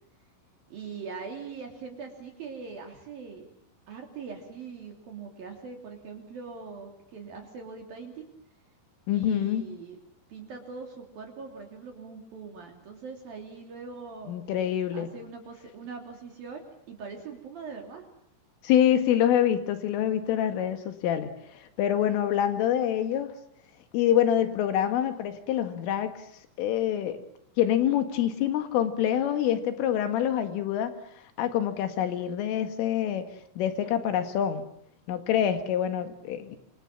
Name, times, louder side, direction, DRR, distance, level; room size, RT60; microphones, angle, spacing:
voice 1, 0.7-3.5 3.9-8.3 9.1-10.0 10.3-14.3 14.9-18.1, right 5 dB, 50° right, 3 dB, 4.5 m, -42 dB
voice 2, 9.1-9.6 14.3-15.1 18.6-23.4 23.9-26.2 26.6-27.2 27.6-33.3 33.6-34.6 35.1-36.6, left 10 dB, 90° left, 8 dB, 4.6 m, -26 dB
27.5 x 26.5 x 7.4 m, 0.71 s
omnidirectional pair, 5.6 m